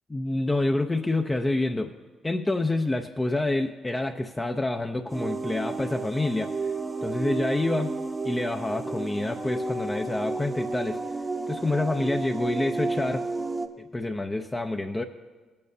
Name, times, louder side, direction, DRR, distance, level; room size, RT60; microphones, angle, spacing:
voice 1, 0.1-1.9 2.2-6.7 7.0-7.9 8.2-11.0 11.5-13.2 13.9-15.0, left 2 dB, 15° left, 3 dB, 0.5 m, -27 dB
sound 1, 5.1-13.7, right 3 dB, 20° right, 0.8 m, -32 dB
17.5 x 8.6 x 2.7 m, 1.4 s
cardioid pair, 90°, 0 cm